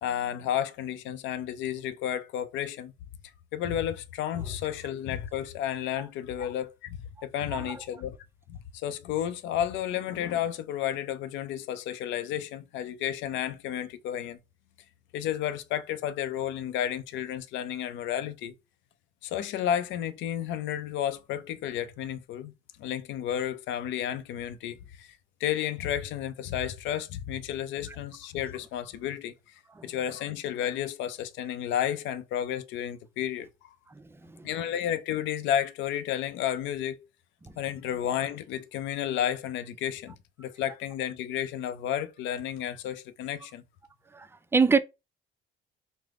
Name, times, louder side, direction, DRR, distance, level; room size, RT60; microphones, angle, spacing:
voice 1, 0.0-2.9 3.5-8.2 8.5-14.4 15.1-18.5 19.2-29.3 29.8-33.7 34.4-37.1 37.6-43.6, left 10 dB, 80° left, 0.5 m, -32 dB
voice 2, 34.0-34.5 37.4-37.5 44.1-44.8, right 5 dB, 15° right, 0.3 m, -27 dB
3.3 x 2.0 x 3.6 m
supercardioid pair, 80°, 19 cm